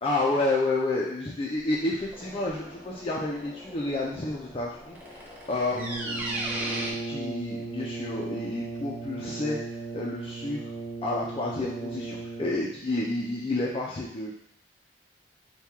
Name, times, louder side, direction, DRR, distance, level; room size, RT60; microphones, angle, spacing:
voice 1, 0.0-9.6 9.9-10.6 11.0-14.3, left 2 dB, 30° left, -4 dB, 0.5 m, -30 dB
sound 1, 1.5-6.9, right 1 dB, 10° right, 0.6 m, -38 dB
Brass instrument, 5.7-12.8, right 3 dB, 15° left, 1.0 m, -36 dB
4.3 x 2.3 x 3.5 m, 0.74 s
head